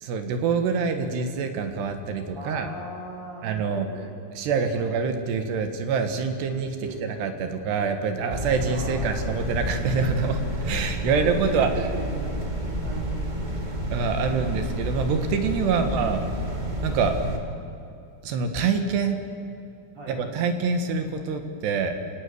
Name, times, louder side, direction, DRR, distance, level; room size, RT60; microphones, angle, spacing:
voice 1, 0.0-2.7 3.4-3.9 4.4-6.8 7.0-11.7 13.9-16.2 16.8-17.2 18.2-19.2 20.1-22.0, right 5 dB, 75° right, 6 dB, 3.6 m, -26 dB
voice 2, 2.3-4.1 4.7-4.9 6.8-7.0 8.6-9.5 11.1-13.7 15.7-16.0 19.9-20.2, right 2 dB, 40° right, -4 dB, 3.5 m, -40 dB
sound 1, 8.3-17.4, equal, 25° right, 1.0 m, -30 dB
28.5 x 17.0 x 9.5 m, 2.6 s
omnidirectional pair, 5.1 m